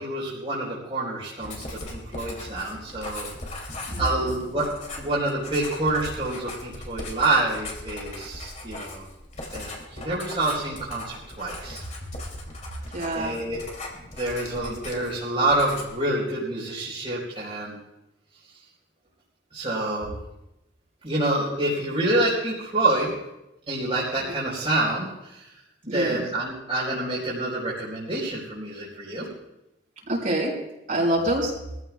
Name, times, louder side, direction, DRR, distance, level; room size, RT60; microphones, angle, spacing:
voice 1, 0.0-3.3 4.0-4.7 5.0-9.1 9.5-11.8 13.1-13.6 13.9-17.8 19.5-20.2 21.0-23.1 23.7-25.5 25.9-29.3, right 2 dB, 35° right, -7 dB, 4.1 m, -27 dB
Writing, 1.4-15.2 15.5-16.0, left 2 dB, 45° left, 2.9 m, -39 dB
voice 2, 3.9-4.3 12.9-13.4 25.9-26.2 30.1-30.5 30.9-31.5, right 1 dB, 50° right, -5 dB, 5.0 m, -26 dB
23.5 x 14.5 x 2.4 m, 0.91 s
head